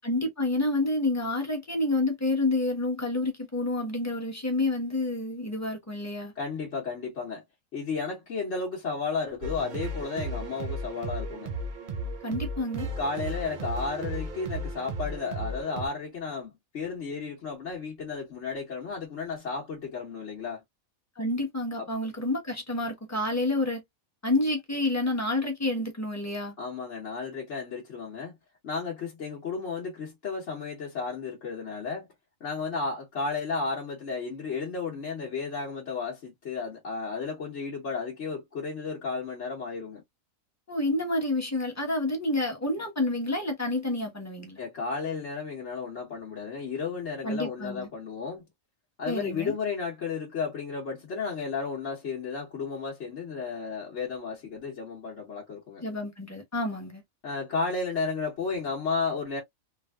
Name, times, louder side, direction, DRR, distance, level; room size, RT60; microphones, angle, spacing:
voice 1, 0.0-6.3 12.2-12.9 21.2-23.8 24.2-26.5 40.7-44.6 47.2-47.9 49.1-49.5 55.8-57.0, left 2 dB, 15° left, 0.9 m, -29 dB
voice 2, 6.3-7.4 7.7-11.5 13.0-20.6 21.8-21.9 26.6-28.4 28.6-32.1 32.4-40.0 44.6-48.5 49.0-55.8 57.2-59.4, left 4 dB, 55° left, 1.2 m, -33 dB
sound 1, 9.4-15.9, right 2 dB, 55° right, 0.5 m, -35 dB
3.2 x 2.5 x 2.3 m
omnidirectional pair, 1.4 m